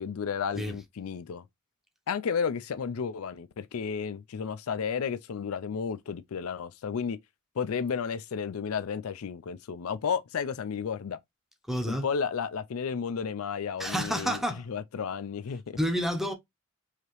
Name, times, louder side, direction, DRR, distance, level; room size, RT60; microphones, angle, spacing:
voice 1, 0.0-1.4 2.1-7.2 7.6-11.2 11.8-14.4 14.7-15.8, left 6 dB, 70° left, 0.4 m, -32 dB
voice 2, 11.7-12.1 13.8-14.6 15.8-16.3, equal, ahead, 0.8 m, -29 dB
4.8 x 2.8 x 3.0 m
head